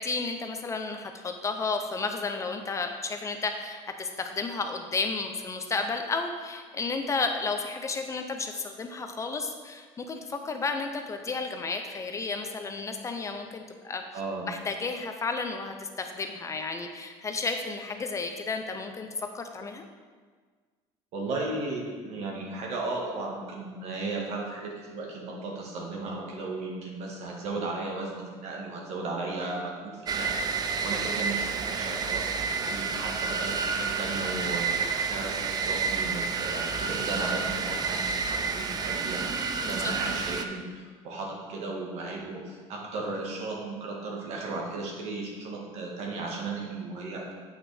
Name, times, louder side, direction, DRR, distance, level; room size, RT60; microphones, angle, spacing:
voice 1, 0.0-14.0 14.5-19.8 39.6-39.9, left 4 dB, 25° left, 5 dB, 0.5 m, -32 dB
voice 2, 14.1-14.5 21.1-47.3, right 3 dB, 60° right, -1 dB, 1.7 m, -35 dB
sound 1, 30.1-40.4, right 5 dB, 35° right, 0.5 m, -30 dB
8.2 x 5.9 x 3.4 m, 1.5 s
cardioid pair, 130°, 12 cm